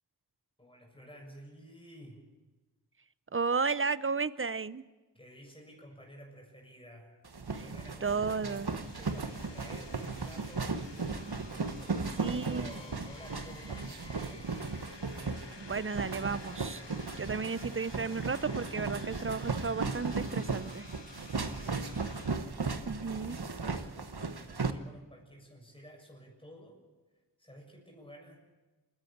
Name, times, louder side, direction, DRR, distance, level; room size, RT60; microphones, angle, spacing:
voice 1, 0.6-2.2 5.1-7.2 7.5-11.2 11.7-14.5 21.2-26.8 27.4-28.4, equal, 15° left, 1 dB, 7.0 m, -52 dB
voice 2, 3.3-4.8 8.0-8.7 12.2-12.7 15.6-16.8 17.2-20.9 22.9-23.4, right 4 dB, 30° right, 16 dB, 0.7 m, -33 dB
sound 1, 7.3-24.7, right 4 dB, 65° right, 1.2 m, -36 dB
sound 2, 8.3-22.4, left 4 dB, 80° left, 1.5 m, -52 dB
28.5 x 11.5 x 8.6 m, 1.2 s
wide cardioid pair, 45°, 42 cm